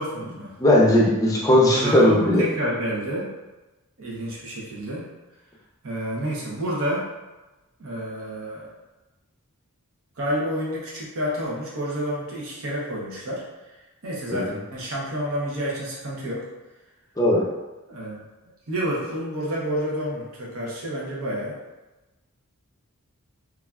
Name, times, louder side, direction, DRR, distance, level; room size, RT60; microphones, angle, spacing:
voice 1, 0.0-0.6 1.6-3.3 4.0-5.1 5.8-7.1 7.8-8.7 10.2-13.4 14.0-16.5 17.9-18.2 18.7-21.6, equal, 65° right, -5 dB, 0.7 m, -29 dB
voice 2, 0.6-2.5 14.3-14.4 17.2-17.5, left 1 dB, 15° left, -4 dB, 0.5 m, -18 dB
3.1 x 2.3 x 2.3 m, 1.1 s
head